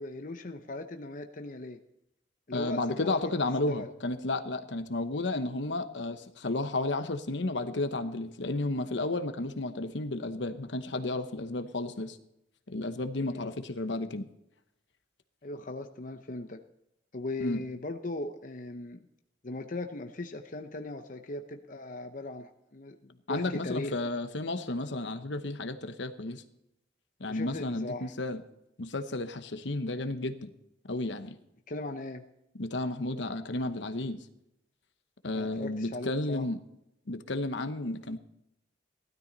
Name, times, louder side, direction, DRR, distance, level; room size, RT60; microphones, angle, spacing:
voice 1, 0.0-1.8 2.5-3.3 3.7-3.9 13.3-13.5 15.4-16.6 17.1-19.0 19.4-23.9 27.3-28.1 31.7-32.2 35.3-36.5, left 2 dB, 45° left, 6 dB, 0.8 m, -38 dB
voice 2, 2.5-12.2 12.7-14.3 17.4-17.6 23.3-26.4 27.2-28.4 28.8-30.5 30.9-31.4 32.6-34.2 35.2-36.6 37.1-38.2, left 2 dB, 65° left, 9 dB, 1.0 m, -32 dB
16.0 x 13.0 x 4.0 m, 0.83 s
head